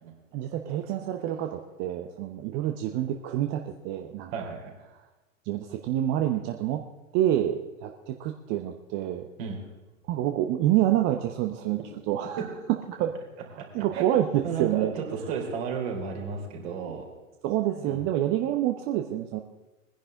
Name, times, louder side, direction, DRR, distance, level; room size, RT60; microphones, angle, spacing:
voice 1, 0.3-4.3 5.5-6.8 7.1-9.3 10.1-11.8 12.1-12.5 12.9-13.1 13.7-14.9 17.4-19.4, right 12 dB, 30° right, 5 dB, 0.8 m, -27 dB
voice 2, 4.3-4.7 9.4-9.6 13.9-14.0 14.4-17.1 17.8-18.0, right 6 dB, 50° right, 0 dB, 3.7 m, -33 dB
20.5 x 10.5 x 3.8 m, 1.1 s
figure-of-eight pair, 100°, 40 cm